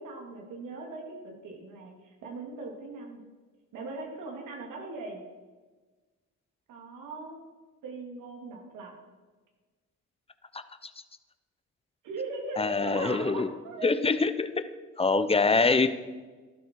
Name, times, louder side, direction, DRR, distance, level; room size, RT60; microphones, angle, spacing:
voice 1, 0.0-3.2 3.7-5.2 6.7-7.4 7.8-8.9 12.0-13.9, right 3 dB, 90° right, 0 dB, 3.2 m, -39 dB
voice 2, 12.6-13.5 13.8-14.6 15.0-15.9, left 4 dB, 20° left, 11 dB, 0.9 m, -24 dB
14.0 x 12.0 x 4.9 m, 1.3 s
cardioid pair, 90°, 30 cm